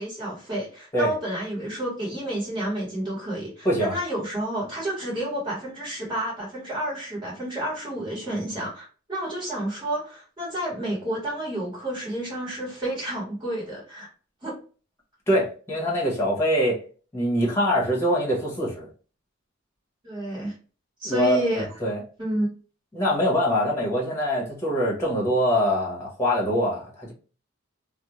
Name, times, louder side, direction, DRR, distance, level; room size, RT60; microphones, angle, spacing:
voice 1, 0.0-14.1 14.4-14.5 20.0-20.5 21.0-21.7 22.2-22.5, right 1 dB, 25° right, -6 dB, 1.3 m, -30 dB
voice 2, 15.3-16.8 17.1-18.9 21.0-21.5 21.8-22.0 22.9-27.1, equal, 15° left, -4 dB, 1.0 m, -23 dB
2.5 x 2.1 x 3.0 m, 0.38 s
head